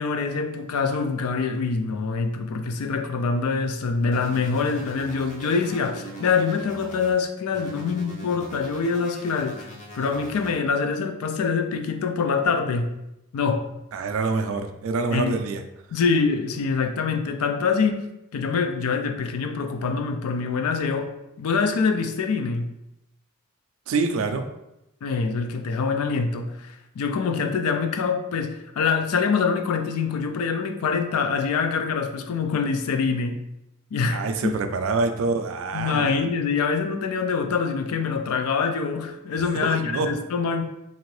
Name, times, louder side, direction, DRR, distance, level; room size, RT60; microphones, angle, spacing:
voice 1, 0.0-9.7 9.9-12.9 13.3-13.7 15.1-15.4 15.9-18.0 18.3-22.7 25.0-33.4 33.9-34.5 35.7-40.6, left 5 dB, 80° left, 6 dB, 0.4 m, -25 dB
sound 1, 4.1-7.1 7.5-10.6, equal, 35° left, 0.5 m, -41 dB
voice 2, 13.9-15.6 23.9-24.5 34.1-36.2 39.6-40.1, right 4 dB, 65° right, 7 dB, 0.3 m, -26 dB
2.8 x 2.6 x 3.1 m, 0.87 s
head